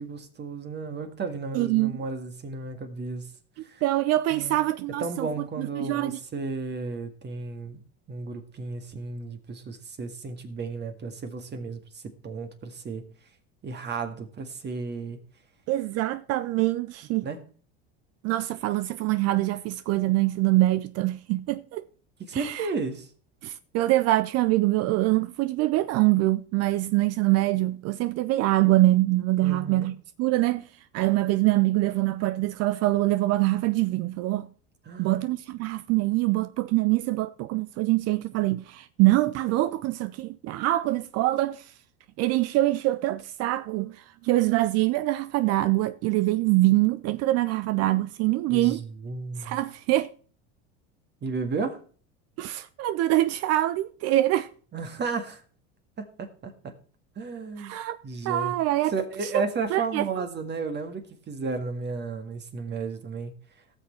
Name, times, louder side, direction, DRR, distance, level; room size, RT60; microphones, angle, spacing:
voice 1, 0.0-3.3 3.6-3.8 4.3-4.6 5.0-7.8 8.1-13.0 13.6-15.2 17.2-17.4 22.3-23.1 29.4-29.9 34.9-35.2 48.5-49.6 51.2-51.8 54.7-55.4 56.0-56.7 57.2-57.8 58.0-58.5 58.9-63.3, right 4 dB, 30° right, 1.9 m, -33 dB
voice 2, 1.5-2.0 3.6-5.3 5.6-6.2 15.7-17.3 18.2-21.9 22.3-22.7 23.4-30.7 30.9-34.5 35.0-41.7 42.2-48.8 49.4-50.1 52.4-54.5 57.6-58.0 58.2-58.9 59.3-59.4 59.7-60.0, right 17 dB, 50° right, 0.6 m, -24 dB
17.5 x 6.3 x 4.3 m
hypercardioid pair, 90°, 33 cm